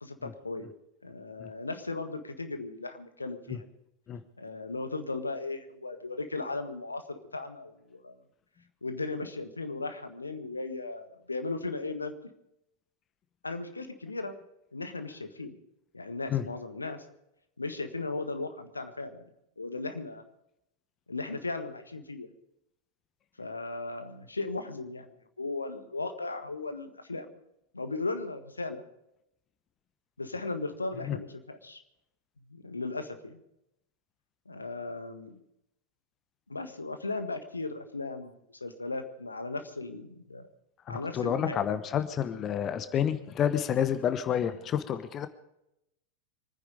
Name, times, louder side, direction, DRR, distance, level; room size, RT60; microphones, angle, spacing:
voice 1, 0.0-0.7 1.0-3.7 4.4-8.1 8.8-12.1 13.4-14.4 14.7-15.5 15.9-17.0 17.6-19.2 19.6-20.2 21.1-22.3 23.4-27.3 27.7-28.8 30.2-31.8 32.5-33.4 34.4-35.4 36.5-40.5 40.9-41.8, left 3 dB, 80° left, 8 dB, 1.6 m, -37 dB
voice 2, 40.9-45.3, left 9 dB, 30° left, 12 dB, 1.0 m, -29 dB
24.5 x 10.0 x 5.0 m, 0.83 s
figure-of-eight pair, 90°, 0 cm